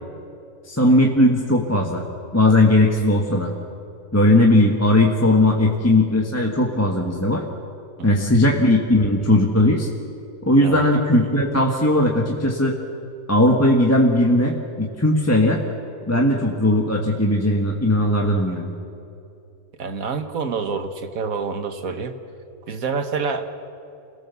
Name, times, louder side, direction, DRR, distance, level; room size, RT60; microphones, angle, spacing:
voice 1, 0.7-2.0 2.3-3.5 4.1-7.4 8.0-9.9 10.4-12.8 13.3-15.6 16.1-18.7, left 1 dB, 10° left, -1 dB, 1.5 m, -18 dB
voice 2, 19.8-22.2 22.7-23.5, right 5 dB, 70° right, 7 dB, 1.7 m, -27 dB
28.0 x 18.5 x 7.1 m, 2.6 s
omnidirectional pair, 1.5 m